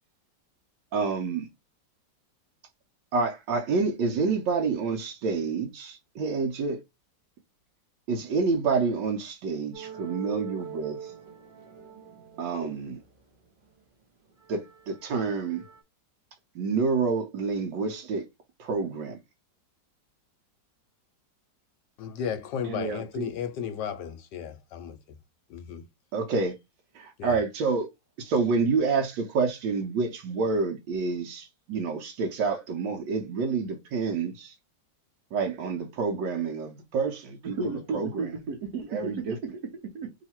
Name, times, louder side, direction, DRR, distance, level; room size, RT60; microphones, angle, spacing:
voice 1, 0.9-1.5 3.1-6.8 8.1-11.1 12.4-13.0 14.5-15.6 16.5-18.2 18.6-19.2 26.1-26.5 26.9-27.9 28.2-34.5 35.3-38.5 38.9-39.4, right 4 dB, 85° right, 1.4 m, -28 dB
sound 1, 9.7-13.8 14.2-15.8, right 8 dB, 40° right, 0.8 m, -44 dB
voice 2, 22.0-25.2 25.5-25.9 27.2-27.4, left 8 dB, 75° left, 1.3 m, -34 dB
voice 3, 22.6-23.3 37.4-40.1, right 4 dB, 65° right, 1.2 m, -34 dB
3.1 x 2.8 x 4.2 m
omnidirectional pair, 2.0 m